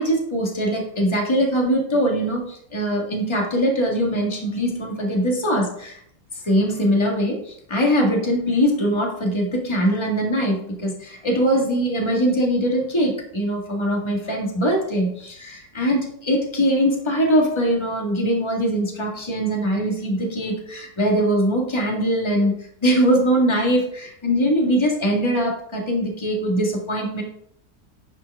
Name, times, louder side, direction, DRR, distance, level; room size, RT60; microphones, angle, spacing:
voice 1, 0.0-6.0 6.4-27.2, equal, 15° left, 0 dB, 1.8 m, -22 dB
10.5 x 5.1 x 4.7 m, 0.68 s
omnidirectional pair, 1.9 m